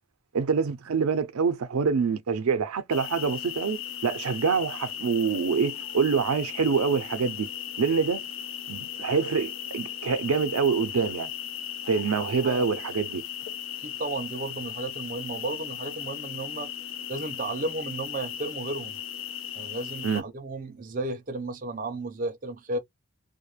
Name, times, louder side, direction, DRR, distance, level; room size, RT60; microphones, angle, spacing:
voice 1, 0.3-7.5 7.8-8.3 8.7-11.3 11.8-13.2 20.0-20.2, right 5 dB, 85° right, 0.4 m, -26 dB
sound 1, 2.9-20.2, left 10 dB, 65° left, 0.5 m, -37 dB
voice 2, 13.8-16.7 17.1-19.0 19.5-22.8, right 2 dB, 40° right, 0.5 m, -33 dB
2.3 x 2.0 x 3.0 m
head